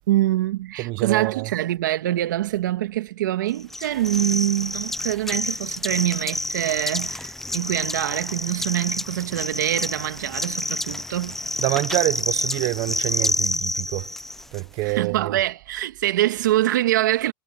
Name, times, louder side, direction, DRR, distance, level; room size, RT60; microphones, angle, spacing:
voice 1, 0.1-11.5 14.8-17.3, right 14 dB, 85° right, 1.9 m, -24 dB
voice 2, 0.8-1.5 11.6-14.1 14.5-15.4, right 21 dB, 45° right, 0.8 m, -26 dB
sound 1, 3.7-14.6, left 1 dB, 5° left, 0.3 m, -28 dB
supercardioid pair, 145°, 10 cm